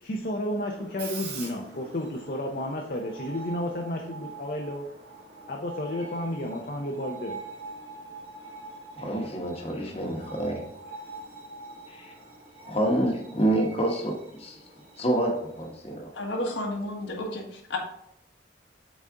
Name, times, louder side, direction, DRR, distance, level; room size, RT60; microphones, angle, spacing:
voice 1, 0.0-4.9 5.5-7.4, left 1 dB, 50° left, 1 dB, 0.6 m, -32 dB
Screech, 0.6-17.2, right 3 dB, 55° right, 2.0 m, -44 dB
voice 2, 8.9-10.6 11.9-12.1 12.6-14.6 15.0-16.1, right 1 dB, 30° left, 0 dB, 1.1 m, -28 dB
voice 3, 16.1-17.8, left 1 dB, 80° left, 0 dB, 1.5 m, -32 dB
7.2 x 4.1 x 3.7 m, 0.77 s
head